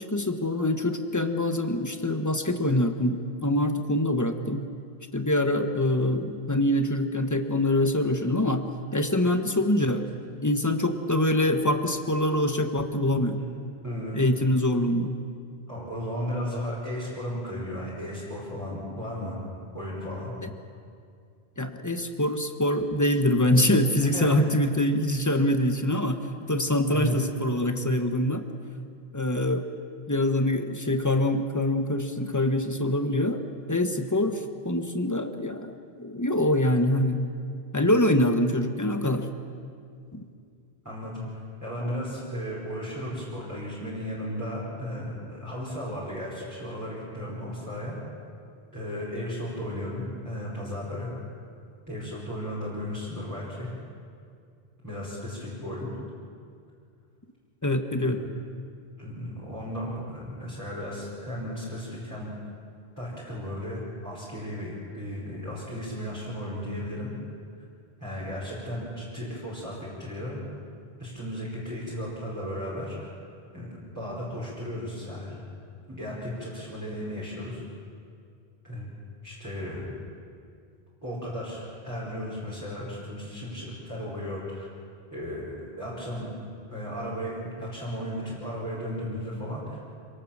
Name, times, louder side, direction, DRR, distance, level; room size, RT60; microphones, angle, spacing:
voice 1, 0.0-4.6 5.1-8.6 8.9-10.0 10.4-13.4 14.1-15.1 20.4-20.5 21.6-26.2 26.5-28.4 29.1-29.6 30.1-33.4 33.7-37.2 37.7-39.3 40.1-40.2 57.6-58.2, left 1 dB, 15° left, 7 dB, 1.2 m, -24 dB
voice 2, 13.8-14.3 15.7-19.4 19.7-20.3 24.0-24.6 26.9-27.3 40.9-41.3 41.6-48.0 48.7-51.1 51.9-53.7 54.8-55.9 58.0-58.1 59.0-62.3 63.0-67.1 68.0-70.4 71.0-73.1 73.5-75.4 75.9-77.6 78.6-78.9 79.2-79.9 81.0-84.7 85.1-86.3 86.7-89.8, equal, 15° right, -8 dB, 5.2 m, -35 dB
27.0 x 18.5 x 7.4 m, 2.3 s
omnidirectional pair, 1.1 m